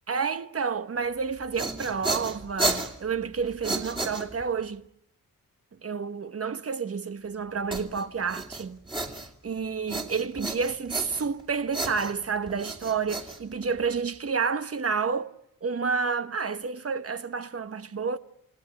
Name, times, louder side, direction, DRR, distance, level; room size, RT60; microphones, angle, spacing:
voice 1, 0.1-4.8 5.8-8.8 9.4-15.3 15.6-18.2, right 5 dB, 45° right, 1.1 m, -30 dB
sound 1, 1.3-4.7 7.7-9.5 9.9-11.4 11.7-14.0, right 2 dB, 15° right, 2.6 m, -33 dB
29.0 x 17.5 x 9.2 m
wide cardioid pair, 115°, 34 cm